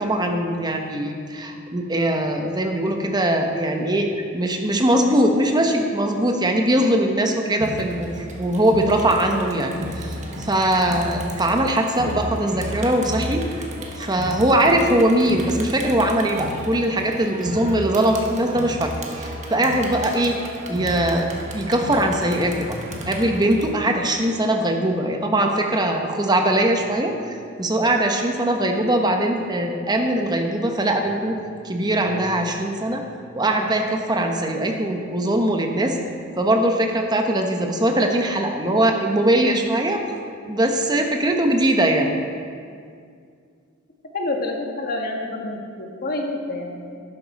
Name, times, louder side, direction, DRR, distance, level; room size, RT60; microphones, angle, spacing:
voice 1, 0.0-8.1 8.4-13.6 14.0-20.4 20.7-22.8 23.1-31.4 31.6-33.0 33.3-36.0 36.4-40.0 40.5-42.1, right 1 dB, 20° right, 3 dB, 1.0 m, -21 dB
Crowd, 7.6-23.6, equal, 35° right, 1.3 m, -33 dB
voice 2, 44.1-47.0, left 2 dB, 50° left, 2 dB, 1.3 m, -28 dB
12.5 x 10.5 x 4.2 m, 2.2 s
head